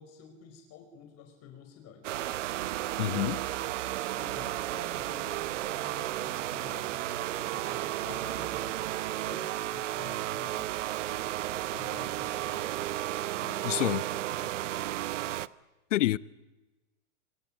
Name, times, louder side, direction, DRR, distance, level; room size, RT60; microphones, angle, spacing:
voice 1, 0.0-2.1 4.2-10.7 11.7-13.0 13.4-14.6, left 8 dB, 40° left, 5.2 m, -50 dB
sound 1, 2.0-15.5, right 14 dB, 75° right, 0.9 m, -33 dB
voice 2, 3.0-3.4 13.6-14.0 15.9-16.2, left 15 dB, 75° left, 0.9 m, -27 dB
26.5 x 24.5 x 9.0 m
hypercardioid pair, 120°, 37 cm